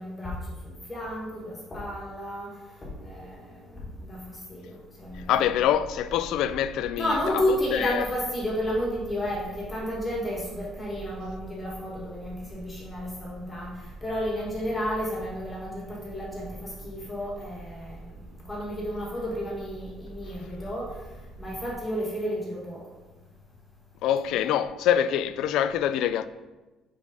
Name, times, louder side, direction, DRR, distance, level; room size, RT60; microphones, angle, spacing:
voice 1, 0.0-5.3 7.0-18.2 18.5-21.0 21.4-22.8, equal, 10° left, 1.9 m, -32 dB
sound 1, 5.0-21.7, right 2 dB, 55° right, 1.6 m, -45 dB
voice 2, 5.1-8.0 24.0-26.3, left 10 dB, 65° left, 0.3 m, -25 dB
5.2 x 5.0 x 5.3 m
cardioid pair, 170°, 0 cm